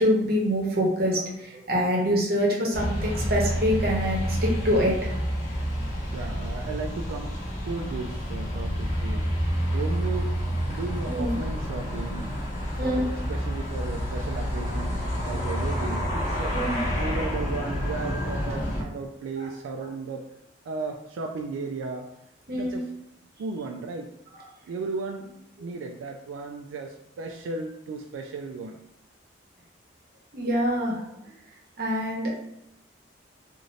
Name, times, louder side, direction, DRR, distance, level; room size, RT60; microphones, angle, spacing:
voice 1, 0.0-5.2 11.1-11.3 12.8-13.0 16.5-16.8 19.4-19.5 22.5-22.8 30.3-31.0 31.8-32.3, equal, 50° right, -2 dB, 0.8 m, -25 dB
sound 1, 2.7-18.8, equal, 35° left, 0.7 m, -29 dB
voice 2, 6.1-7.4 7.7-10.4 10.7-12.4 12.8-16.6 16.9-20.3 20.7-22.1 22.5-22.9 23.4-24.1 24.7-28.8, right 4 dB, 85° right, 2 dB, 0.3 m, -35 dB
2.6 x 2.5 x 3.1 m, 0.80 s
head